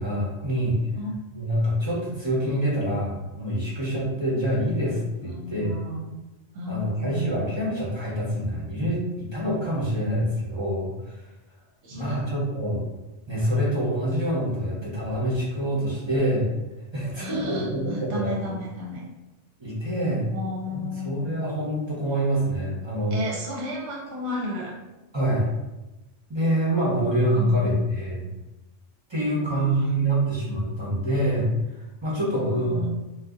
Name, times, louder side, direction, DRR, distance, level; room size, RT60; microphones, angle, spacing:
voice 1, 0.0-0.8 1.3-5.8 6.7-11.1 11.9-12.8 13.3-16.5 16.9-18.5 19.6-20.3 20.7-23.2 25.1-25.5 26.3-28.3 29.1-31.5 32.0-32.8, right 1 dB, 25° right, -6 dB, 0.7 m, -26 dB
voice 2, 5.2-6.2 6.5-7.5 11.8-12.2 17.2-19.0 20.3-21.3 23.1-24.8 27.3-27.9 29.4-29.9 32.4-32.9, equal, 65° right, -2 dB, 0.9 m, -33 dB
2.7 x 2.3 x 3.7 m, 1.0 s
omnidirectional pair, 1.3 m